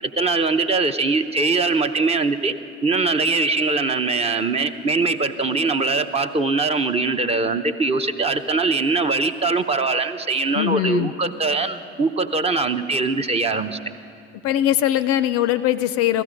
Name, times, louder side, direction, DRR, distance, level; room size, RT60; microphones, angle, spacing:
voice 1, 0.0-2.5 2.8-13.8, right 3 dB, 20° right, 9 dB, 0.6 m, -22 dB
voice 2, 10.5-11.1 14.4-16.2, left 12 dB, 45° left, 13 dB, 0.4 m, -21 dB
16.5 x 14.5 x 5.0 m, 2.3 s
figure-of-eight pair, 55°, 34 cm